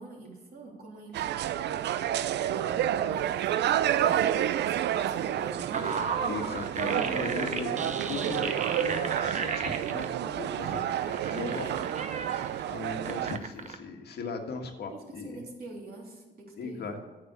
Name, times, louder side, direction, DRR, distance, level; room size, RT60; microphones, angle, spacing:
voice 1, 0.0-6.0 7.5-8.5 11.5-12.4 14.9-17.0, right 3 dB, 60° right, -2 dB, 3.3 m, -46 dB
sound 1, 1.1-13.4, right 11 dB, 80° right, 0.5 m, -30 dB
sound 2, 5.0-10.0 10.6-12.6 13.0-13.7, right 5 dB, 45° right, 1.0 m, -34 dB
voice 2, 6.3-11.7 12.6-15.4 16.6-17.0, left 4 dB, 70° left, 3 dB, 1.6 m, -38 dB
9.4 x 7.4 x 6.9 m, 1.3 s
cardioid pair, 85°, 17 cm